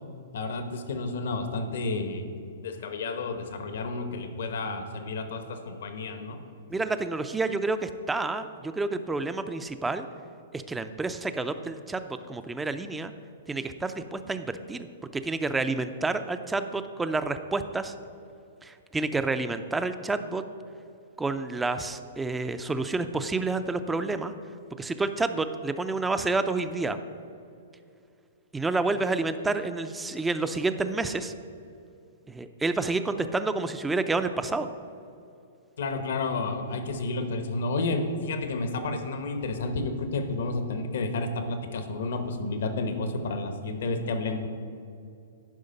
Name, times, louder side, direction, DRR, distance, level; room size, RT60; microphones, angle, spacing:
voice 1, 0.3-2.3 2.6-6.4 35.8-44.5, left 3 dB, 70° left, 7 dB, 1.0 m, -31 dB
voice 2, 6.7-10.1 10.5-13.1 13.5-14.9 15.1-17.9 18.6-20.4 21.2-24.3 24.8-27.0 28.5-31.3 32.3-34.7, right 3 dB, 10° right, 10 dB, 0.4 m, -29 dB
11.0 x 5.1 x 5.3 m, 2.5 s
hypercardioid pair, 135°, 0 cm